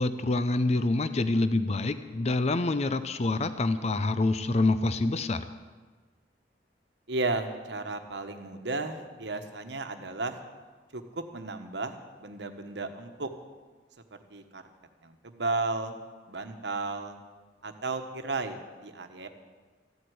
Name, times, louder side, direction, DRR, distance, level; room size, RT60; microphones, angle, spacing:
voice 1, 0.0-5.4, left 2 dB, 40° left, 12 dB, 0.6 m, -26 dB
voice 2, 7.1-10.4 10.9-13.3 14.3-14.6 15.0-15.9 16.3-17.2 17.6-19.3, right 3 dB, 70° right, 6 dB, 1.3 m, -34 dB
14.5 x 8.1 x 9.3 m, 1.4 s
head